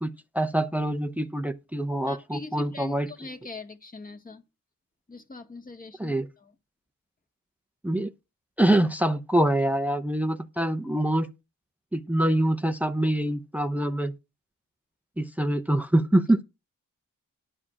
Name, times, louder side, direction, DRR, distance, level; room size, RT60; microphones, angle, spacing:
voice 1, 0.0-3.1 6.0-6.3 7.8-8.1 8.6-11.3 11.9-14.1 15.2-16.4, right 1 dB, 5° right, 0.7 m, -25 dB
voice 2, 2.1-4.4 5.1-6.5, left 3 dB, 25° left, 1.8 m, -42 dB
11.0 x 4.9 x 7.4 m
wide cardioid pair, 135°, 33 cm